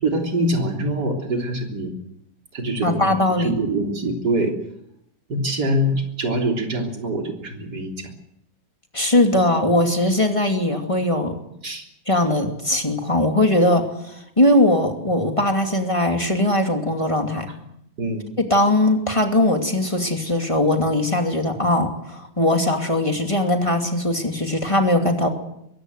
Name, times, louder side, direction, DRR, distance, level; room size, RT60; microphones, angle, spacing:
voice 1, 0.0-1.9 2.5-3.2 3.4-4.5 5.3-8.1 11.6-11.8 18.0-18.2, right 1 dB, 55° right, 2 dB, 4.0 m, -24 dB
voice 2, 2.8-3.6 8.9-11.3 12.1-17.5 18.5-25.3, left 1 dB, 15° left, 3 dB, 2.6 m, -20 dB
23.0 x 17.0 x 8.0 m, 0.78 s
omnidirectional pair, 2.1 m